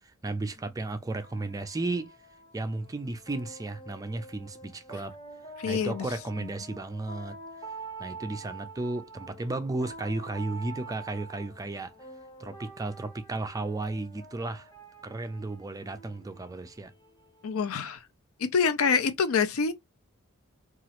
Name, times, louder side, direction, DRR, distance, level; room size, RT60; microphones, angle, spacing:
voice 1, 0.2-2.1 2.5-5.2 5.6-7.4 8.0-11.9 12.4-14.7 15.0-16.9, right 2 dB, 15° right, 0.3 m, -34 dB
sound 1, 0.5-18.0, right 3 dB, 20° left, 0.8 m, -47 dB
voice 2, 5.6-6.0 17.4-18.0 18.5-19.7, left 5 dB, 70° left, 0.5 m, -26 dB
2.9 x 2.4 x 2.8 m
head